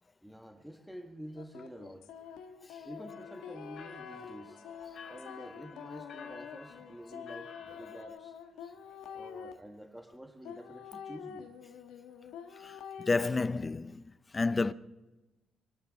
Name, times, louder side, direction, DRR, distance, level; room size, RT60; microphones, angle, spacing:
voice 1, 0.2-2.2 2.8-4.6 5.1-8.4 9.1-11.5, equal, 5° right, 1.4 m, -48 dB
sound 1, 1.4-9.5 10.4-13.3, left 7 dB, 90° left, 1.2 m, -47 dB
sound 2, 3.1-8.0, left 5 dB, 55° left, 2.7 m, -51 dB
voice 2, 13.0-14.0 14.3-14.7, left 3 dB, 25° left, 0.6 m, -29 dB
24.0 x 12.5 x 4.0 m
cardioid pair, 90°, 0 cm